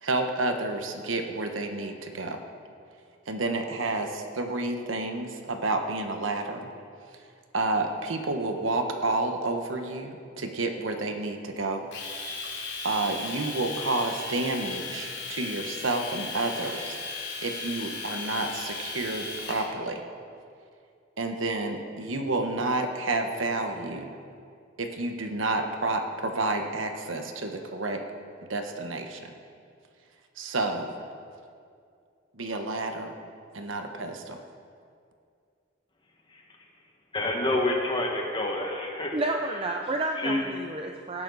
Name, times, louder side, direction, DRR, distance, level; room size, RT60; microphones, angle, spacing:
voice 1, 0.0-2.4 3.3-6.7 7.5-11.9 12.8-17.0 17.4-20.0 21.2-24.1 24.8-28.0 28.5-29.3 30.4-30.9 32.3-33.1 33.5-34.4, right 2 dB, 80° right, 5 dB, 1.2 m, -30 dB
Domestic sounds home sounds, 11.9-19.7, left 3 dB, 60° left, 2.8 m, -36 dB
voice 2, 37.1-39.1 40.2-40.4, left 1 dB, 25° left, 0 dB, 1.7 m, -27 dB
voice 3, 39.1-41.2, right 2 dB, 30° right, 3 dB, 0.6 m, -30 dB
18.0 x 11.5 x 4.1 m, 2.3 s
head